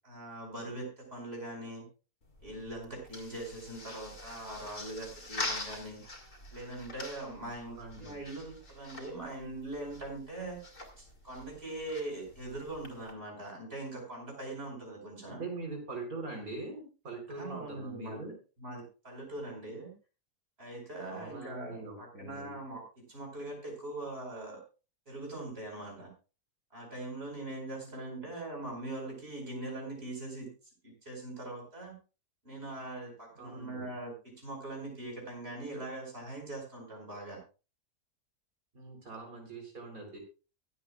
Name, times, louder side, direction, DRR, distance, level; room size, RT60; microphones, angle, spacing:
voice 1, 0.0-1.9 2.4-6.0 6.5-10.6 11.0-15.4 17.3-18.3 18.6-19.9 20.6-24.6 25.1-26.1 26.7-30.5 30.8-32.0 32.4-37.4, right 2 dB, 40° right, 0 dB, 5.2 m, -41 dB
sound 1, 2.2-13.1, left 2 dB, 50° left, 2.9 m, -45 dB
voice 2, 7.6-8.2 15.3-18.3 21.1-22.6 27.8-28.3 33.4-33.9 38.7-40.2, right 3 dB, 60° right, 2 dB, 4.4 m, -43 dB
23.5 x 8.6 x 2.4 m, 0.34 s
omnidirectional pair, 1.7 m